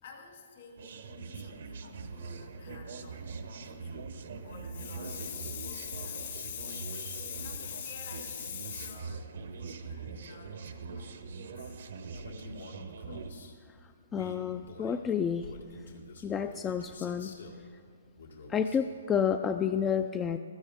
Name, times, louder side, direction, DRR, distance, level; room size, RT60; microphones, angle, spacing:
voice 1, 0.0-3.3 3.6-4.1 4.4-11.3 11.6-11.8, left 9 dB, 60° left, 3 dB, 2.1 m, -44 dB
sound 1, 0.8-13.3, right 4 dB, 65° right, 0.9 m, -42 dB
Male speech man speaking, 12.1-13.5 14.1-17.6 18.1-18.9, left 3 dB, 85° left, 1.9 m, -48 dB
voice 2, 14.1-15.5 16.2-17.4 18.5-20.4, left 7 dB, 15° left, 8 dB, 0.3 m, -30 dB
15.0 x 13.5 x 3.5 m, 2.1 s
hypercardioid pair, 140°, 0 cm